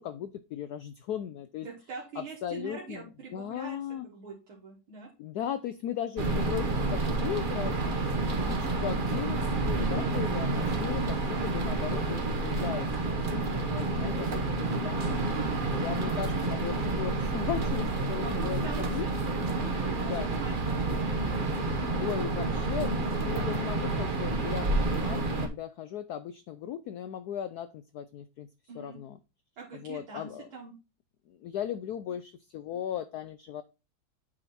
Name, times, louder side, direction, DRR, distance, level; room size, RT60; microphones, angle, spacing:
voice 1, 0.0-1.7 2.2-4.1 5.2-7.9 8.4-15.0 15.8-19.1 20.0-20.3 21.9-28.5 28.8-29.2 29.7-30.5 31.3-33.6, left 10 dB, 85° left, 0.8 m, -37 dB
voice 2, 1.6-3.8 4.0-5.1 10.7-11.0 18.2-21.2 28.7-29.0 29.6-30.7, right 4 dB, 75° right, 2.5 m, -43 dB
sound 1, 6.2-25.5, right 2 dB, 40° right, 0.8 m, -29 dB
9.0 x 3.8 x 4.2 m
omnidirectional pair, 2.3 m